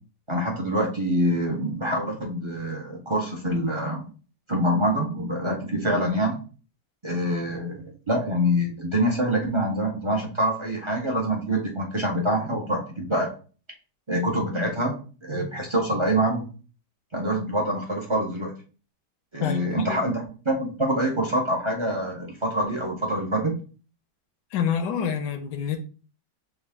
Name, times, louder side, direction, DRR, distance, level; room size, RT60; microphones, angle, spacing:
voice 1, 0.3-4.0 4.5-6.4 7.0-13.3 14.1-14.9 15.2-16.5 17.1-18.5 19.3-23.6, equal, 45° right, -1 dB, 0.3 m, -25 dB
voice 2, 19.4-20.0 24.5-25.8, left 7 dB, 85° left, 6 dB, 1.3 m, -27 dB
6.0 x 2.4 x 3.5 m, 0.38 s
omnidirectional pair, 1.8 m